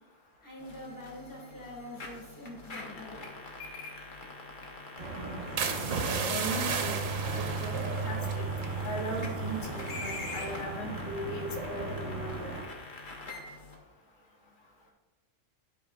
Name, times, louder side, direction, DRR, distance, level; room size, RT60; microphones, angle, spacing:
voice 1, 0.4-3.3, left 1 dB, 15° left, -3 dB, 1.8 m, -45 dB
sound 1, 0.6-13.7, left 3 dB, 40° left, 1.2 m, -45 dB
sound 2, 5.0-12.6, right 3 dB, 55° right, 1.7 m, -36 dB
sound 3, 5.6-9.3 9.6-9.9 10.4-10.7, right 5 dB, 85° right, 1.2 m, -34 dB
voice 2, 6.3-6.9 7.3-8.4 8.8-12.5, equal, 80° left, -2 dB, 1.7 m, -38 dB
11.5 x 5.4 x 2.4 m, 1.2 s
omnidirectional pair, 1.3 m